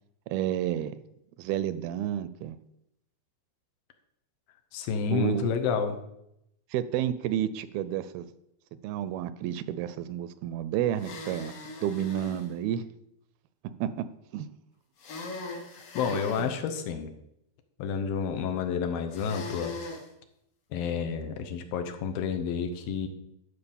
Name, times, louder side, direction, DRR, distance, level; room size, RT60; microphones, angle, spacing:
voice 1, 0.3-0.9 1.4-2.6 5.1-5.5 6.7-8.3 8.8-11.5 11.8-12.8 13.8-14.1 14.3-14.5 16.1-16.6, right 11 dB, 80° right, 13 dB, 2.4 m, -30 dB
voice 2, 4.7-6.0 15.9-17.1 17.8-19.7 20.7-23.1, left 6 dB, 75° left, 6 dB, 2.6 m, -30 dB
sound 1, 11.0-12.5 15.0-16.5 19.1-20.0, left 3 dB, 55° left, 1.8 m, -39 dB
12.0 x 4.7 x 7.1 m, 0.81 s
omnidirectional pair, 4.4 m